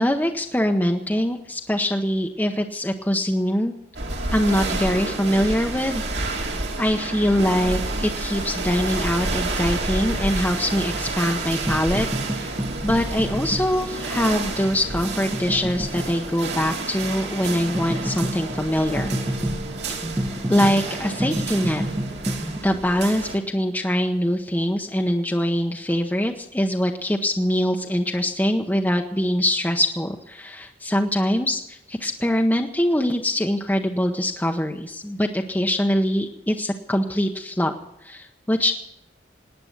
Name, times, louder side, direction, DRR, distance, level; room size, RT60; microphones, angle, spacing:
voice 1, 0.0-3.7 4.3-12.5 12.8-19.1 20.5-21.8 22.6-37.7 38.0-38.7, equal, 10° left, 2 dB, 0.8 m, -23 dB
sound 1, 3.9-23.4, right 2 dB, 65° right, 2.9 m, -30 dB
sound 2, 10.4-22.6, right 1 dB, 15° right, 1.0 m, -31 dB
18.5 x 9.7 x 7.9 m, 0.79 s
head